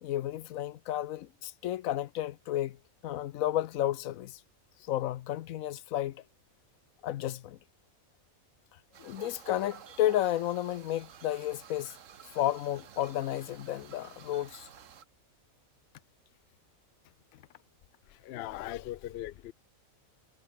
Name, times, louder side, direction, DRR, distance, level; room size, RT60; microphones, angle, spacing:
voice 1, 0.0-2.8 3.0-4.4 4.9-6.2 7.0-7.6 9.0-11.9 12.3-14.7 18.5-18.6, left 13 dB, 80° left, 1.0 m, -32 dB
sound 1, 8.9-15.0, right 8 dB, 70° right, 1.4 m, -52 dB
voice 2, 18.1-19.5, left 14 dB, 60° left, 0.7 m, -39 dB
omnidirectional pair, 1.4 m